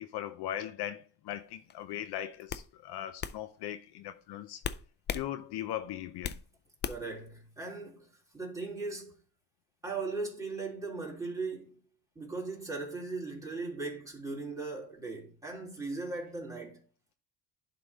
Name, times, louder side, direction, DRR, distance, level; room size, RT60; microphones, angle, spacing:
voice 1, 0.0-4.6 5.1-6.4, left 11 dB, 65° left, 0.7 m, -39 dB
sound 1, 1.7-1.9 2.5-2.7 3.2-3.4 4.6-5.3 5.6-6.4 6.8-7.2, left 8 dB, 25° left, 0.3 m, -36 dB
voice 2, 6.8-9.2 9.8-11.8 12.1-16.8, right 3 dB, 5° right, 3.3 m, -38 dB
11.0 x 3.9 x 3.4 m
cardioid pair, 95°, 43 cm